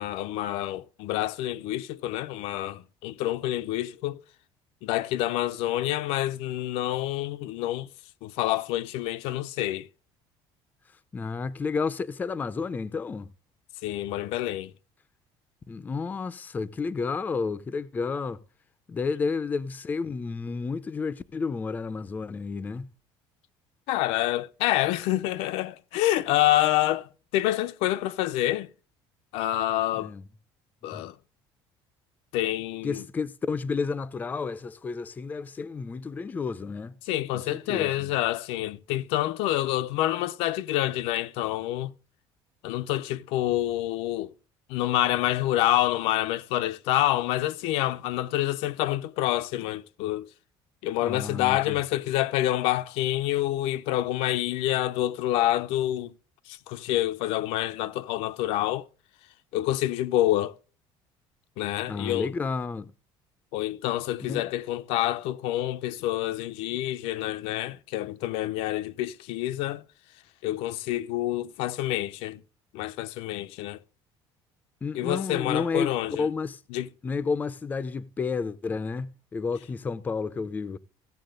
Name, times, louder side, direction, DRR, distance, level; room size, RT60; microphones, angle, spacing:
voice 1, 0.0-4.2 4.8-7.9 8.2-9.9 13.8-14.7 23.9-28.7 29.3-30.1 30.8-31.1 32.3-33.0 37.1-41.9 42.6-44.3 44.7-50.3 50.8-56.1 56.5-58.9 59.5-60.5 61.6-62.3 63.5-69.8 70.4-72.4 72.7-73.8 74.9-76.3 76.7-76.9, left 14 dB, 80° left, 0.6 m, -27 dB
voice 2, 11.1-13.3 15.7-18.4 18.9-22.9 29.9-30.2 30.9-31.0 32.8-37.0 37.3-38.1 51.0-51.8 61.9-62.9 64.3-64.4 74.8-76.6 77.0-80.8, left 4 dB, 15° left, 0.5 m, -31 dB
15.5 x 7.3 x 3.8 m
cardioid pair, 165°, 10 cm